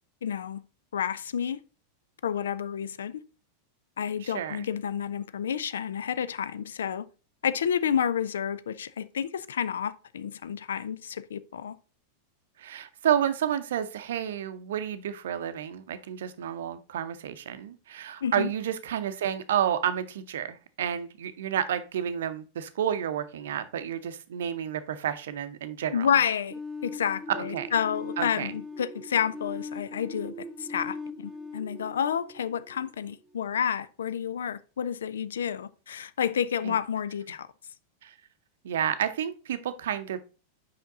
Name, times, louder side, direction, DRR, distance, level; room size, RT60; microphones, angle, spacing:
voice 1, 0.2-0.6 0.9-1.6 2.2-3.2 4.0-7.0 7.4-11.7 18.2-18.5 25.9-26.5 26.8-37.5, left 8 dB, 65° left, 0.4 m, -30 dB
voice 2, 4.2-4.7 12.6-26.1 27.5-27.7 28.2-28.5 36.6-36.7 38.0-38.1 38.6-40.2, right 9 dB, 60° right, 0.6 m, -30 dB
sound 1, 26.5-33.3, left 2 dB, 10° right, 0.4 m, -40 dB
5.8 x 5.1 x 3.8 m
figure-of-eight pair, 90°, 0 cm